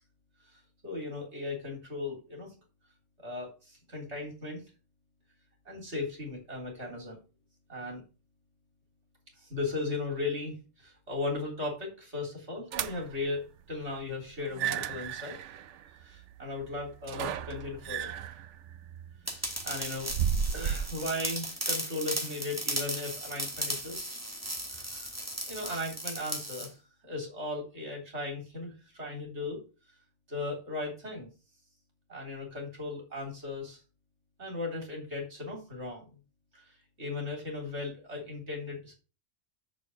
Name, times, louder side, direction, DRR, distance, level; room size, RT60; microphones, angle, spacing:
voice 1, 0.8-2.5 3.2-4.6 5.7-7.2 7.7-8.0 9.4-10.5 10.8-13.4 13.7-15.4 16.0-18.1 19.4-20.1 20.5-24.1 24.7-25.1 25.5-26.7 27.0-29.6 30.3-31.3 32.1-33.8 34.4-36.1 36.5-36.6 37.0-38.9, left 2 dB, 65° right, 1 dB, 3.9 m, -37 dB
sound 1, 12.7-13.2 14.4-21.0, right 8 dB, 85° right, 1.0 m, -34 dB
sound 2, 19.3-26.7, right 1 dB, 15° right, 2.0 m, -36 dB
6.9 x 6.3 x 7.0 m, 0.33 s
omnidirectional pair, 1.2 m